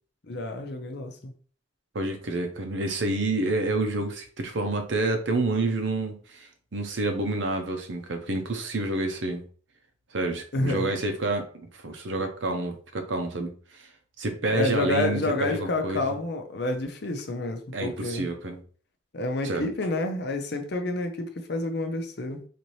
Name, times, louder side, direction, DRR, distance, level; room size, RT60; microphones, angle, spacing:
voice 1, 0.3-1.3 10.5-10.9 14.5-18.3 19.1-22.5, left 2 dB, 55° left, 6 dB, 0.6 m, -29 dB
voice 2, 1.9-9.4 10.1-11.5 11.8-13.5 14.2-16.2 17.7-18.6 19.4-19.7, right 2 dB, 65° right, 6 dB, 0.7 m, -28 dB
4.1 x 2.7 x 3.1 m, 0.43 s
head